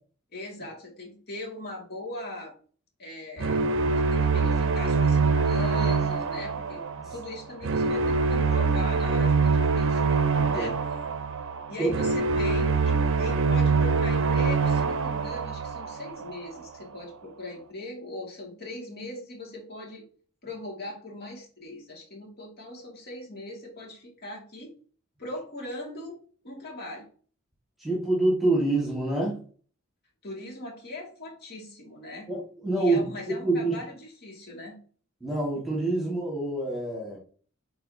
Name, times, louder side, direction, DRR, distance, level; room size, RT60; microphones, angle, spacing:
voice 1, 0.3-2.5 3.0-6.8 7.1-10.0 10.5-10.8 11.7-20.0 20.4-24.7 25.2-26.2 26.4-27.1 30.2-32.3 32.7-34.8, left 2 dB, 50° left, 0 dB, 2.3 m, -39 dB
sound 1, 3.4-16.5, right 4 dB, 60° right, 0.6 m, -24 dB
voice 2, 10.3-10.7 11.8-11.9 27.8-29.4 32.3-33.1 33.4-33.7 35.2-37.2, right 2 dB, ahead, -4 dB, 1.9 m, -26 dB
8.5 x 4.0 x 2.8 m, 0.42 s
head